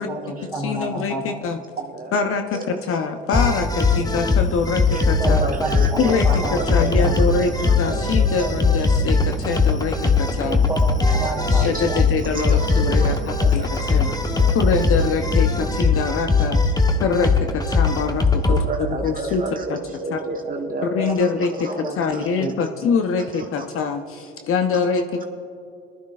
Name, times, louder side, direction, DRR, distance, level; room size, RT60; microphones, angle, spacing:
voice 1, 0.0-1.4 4.9-7.2 10.3-12.1 20.9-22.5, right 2 dB, 5° right, -3 dB, 3.1 m, -30 dB
voice 2, 0.6-1.6 2.1-5.4 6.0-6.3 6.7-10.6 11.5-14.1 14.5-16.6 17.0-19.4 19.7-19.8 20.1-20.2 20.8-21.7 22.0-25.2, left 5 dB, 45° left, 6 dB, 0.8 m, -24 dB
voice 3, 1.8-2.1 2.5-2.8 4.9-5.0 5.4-6.2 6.6-7.0 7.3-8.5 8.9-9.0 9.4-9.5 10.0-10.1 11.0-11.1 11.3-11.8 12.3-13.2 13.4-14.6 18.5-21.3 21.6-21.7 22.1-22.2, right 3 dB, 30° right, 0 dB, 1.5 m, -32 dB
sound 1, 3.3-18.7, left 3 dB, 15° left, 1.0 m, -20 dB
20.5 x 12.0 x 2.4 m, 2.6 s
hypercardioid pair, 65°, 30 cm